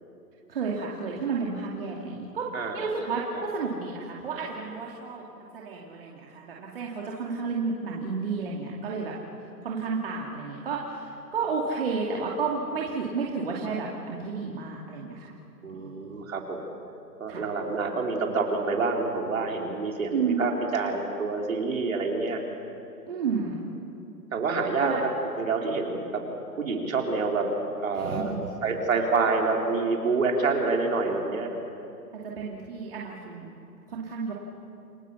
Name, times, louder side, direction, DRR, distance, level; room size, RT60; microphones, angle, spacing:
voice 1, 0.5-2.5 2.7-9.1 9.6-15.3 15.7-16.1 17.3-17.4 20.1-20.4 23.1-23.6 24.8-25.0 27.9-28.5 32.1-33.5 33.9-34.3, right 5 dB, 35° right, -3 dB, 2.5 m, -31 dB
voice 2, 15.6-16.6 17.2-22.4 24.3-25.0 25.4-26.2 26.5-27.5 27.8-28.3 28.6-31.6, right 4 dB, 55° right, 1 dB, 4.4 m, -27 dB
29.5 x 23.5 x 7.1 m, 2.7 s
hypercardioid pair, 180°, 49 cm